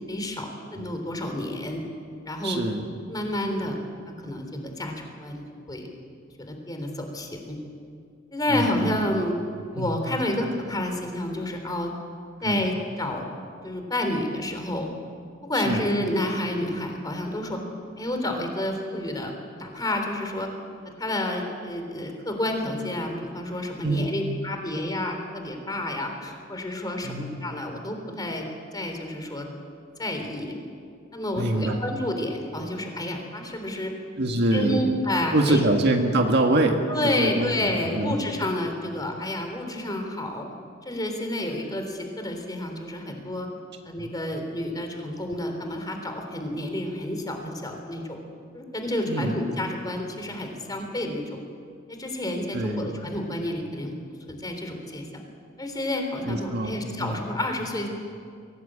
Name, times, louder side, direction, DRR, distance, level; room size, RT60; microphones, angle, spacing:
voice 1, 0.1-1.8 2.3-2.6 3.1-3.8 4.2-5.4 5.7-5.9 6.4-7.6 8.3-9.3 9.7-11.9 12.4-13.2 13.6-14.9 15.4-17.6 18.0-20.5 21.0-28.5 28.7-29.5 30.0-30.5 31.1-33.9 34.2-35.6 36.9-40.5 40.8-43.5 43.9-48.2 48.5-51.4 51.9-53.9 54.3-55.1 55.6-57.9, left 1 dB, 20° left, 4 dB, 3.5 m, -29 dB
voice 2, 2.4-2.9 8.5-8.8 9.8-10.0 12.4-12.7 15.6-15.9 23.8-24.1 27.0-27.4 31.4-31.8 34.2-34.9 35.3-37.5 37.8-38.2 44.0-44.1 49.1-49.4 52.5-53.1 56.3-57.2, right 2 dB, 55° right, 3 dB, 1.8 m, -25 dB
23.0 x 17.5 x 8.8 m, 2.3 s
head